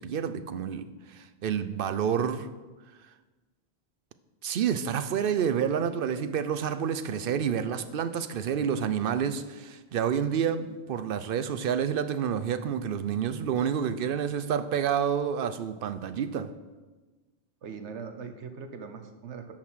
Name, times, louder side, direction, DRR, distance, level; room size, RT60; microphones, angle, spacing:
voice 1, 0.0-2.5 4.4-16.5, right 8 dB, 60° right, 0.7 m, -29 dB
voice 2, 17.6-19.5, right 5 dB, 85° right, 1.2 m, -41 dB
10.5 x 5.9 x 6.2 m
omnidirectional pair, 1.2 m